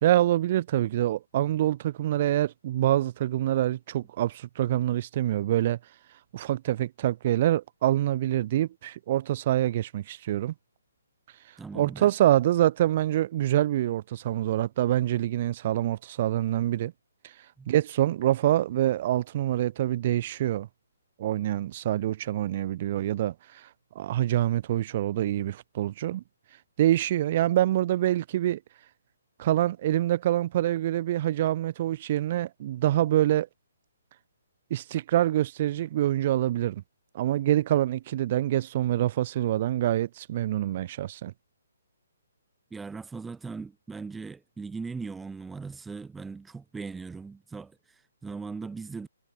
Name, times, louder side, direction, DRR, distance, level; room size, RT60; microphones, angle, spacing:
voice 1, 0.0-5.8 6.3-10.5 11.7-16.9 17.7-20.7 21.2-23.7 23.9-26.2 26.8-28.6 29.4-33.5 34.7-36.8 37.1-41.3, right 13 dB, 40° right, 2.4 m, -25 dB
voice 2, 11.6-12.1 17.6-17.7 42.7-49.1, right 4 dB, 5° right, 4.5 m, -39 dB
hypercardioid pair, 150°, 0 cm